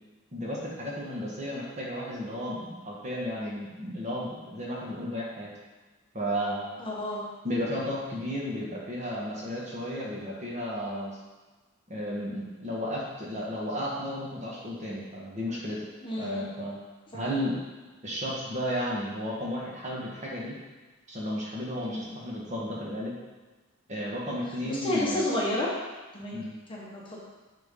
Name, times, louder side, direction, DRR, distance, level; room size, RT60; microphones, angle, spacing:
voice 1, 0.3-5.5 6.1-6.8 7.4-11.2 11.9-15.8 16.2-16.8 17.1-17.6 18.0-20.5 21.1-23.1 23.9-25.3 26.3-26.5, equal, 35° right, -4 dB, 1.4 m, -33 dB
voice 2, 6.8-7.2 16.0-16.5 17.1-17.3 21.9-22.2 24.6-25.7 26.1-26.4 26.7-27.2, left 1 dB, 25° left, -5 dB, 1.1 m, -31 dB
9.9 x 3.8 x 3.7 m, 1.2 s
head